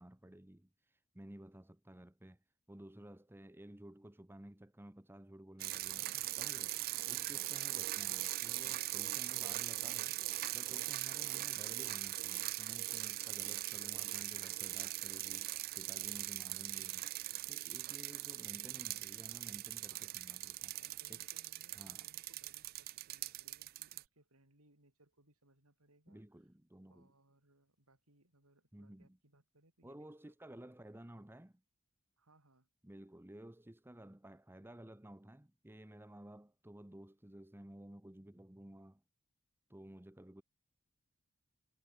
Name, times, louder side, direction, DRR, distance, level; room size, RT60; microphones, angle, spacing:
voice 1, 0.0-2.4 2.7-6.1 6.4-10.2 10.5-17.1 17.5-20.8 21.1-21.3 21.7-22.1 26.1-27.1 28.7-29.2 29.8-31.6 32.8-39.0 39.7-40.4, right 1 dB, 10° right, 0.9 m, -54 dB
sound 1, 5.6-24.0, right 17 dB, 45° right, 0.3 m, -40 dB
voice 2, 18.1-19.3 19.9-20.3 20.7-26.2 26.9-30.6 32.2-32.7, right 2 dB, 85° right, 6.8 m, -69 dB
head